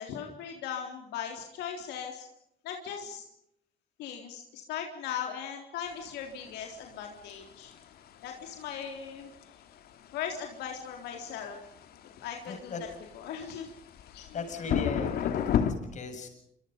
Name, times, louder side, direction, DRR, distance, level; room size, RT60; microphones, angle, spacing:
voice 1, 0.0-2.3 2.6-3.2 4.0-7.7 8.2-9.3 10.1-11.6 12.2-12.7 13.1-13.7 14.1-14.3, left 8 dB, 85° left, 2 dB, 3.8 m, -38 dB
sound 1, 5.9-15.7, left 9 dB, 65° left, 2.8 m, -34 dB
voice 2, 12.5-12.8 14.3-16.3, left 4 dB, 45° left, 6 dB, 7.6 m, -38 dB
27.0 x 26.0 x 5.3 m, 0.78 s
cardioid pair, 110°, 17 cm